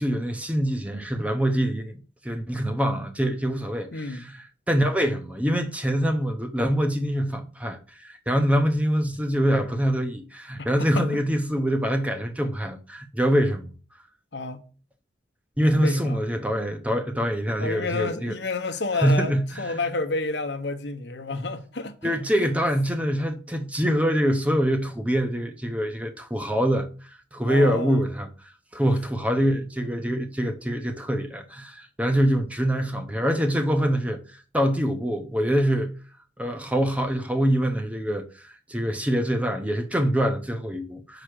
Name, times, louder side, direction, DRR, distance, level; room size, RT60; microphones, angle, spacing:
voice 1, 0.0-4.2 4.7-13.7 15.6-18.4 19.0-19.4 22.0-28.3 28.7-35.9 36.4-41.2, equal, 5° right, 0.7 m, -24 dB
voice 2, 3.9-4.3 10.6-11.1 14.3-14.6 15.8-16.2 17.6-22.5 27.4-28.0 28.9-29.0, left 3 dB, 70° left, 0.9 m, -30 dB
5.7 x 5.0 x 6.2 m
head